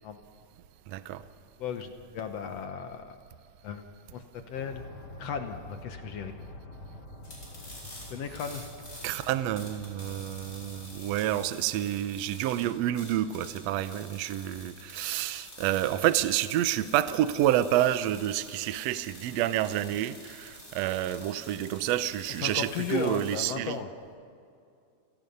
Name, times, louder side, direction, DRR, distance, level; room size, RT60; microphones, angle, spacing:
voice 1, 0.9-1.2 9.0-23.8, right 12 dB, 75° right, 1.6 m, -29 dB
voice 2, 1.6-3.2 3.6-4.8 5.2-6.4 8.1-8.6 22.4-23.9, left 6 dB, 65° left, 1.9 m, -35 dB
sound 1, 4.5-12.4, left 1 dB, 50° left, 3.8 m, -47 dB
sound 2, 7.2-23.4, left 1 dB, 25° left, 6.7 m, -48 dB
29.5 x 18.0 x 5.4 m
omnidirectional pair, 3.7 m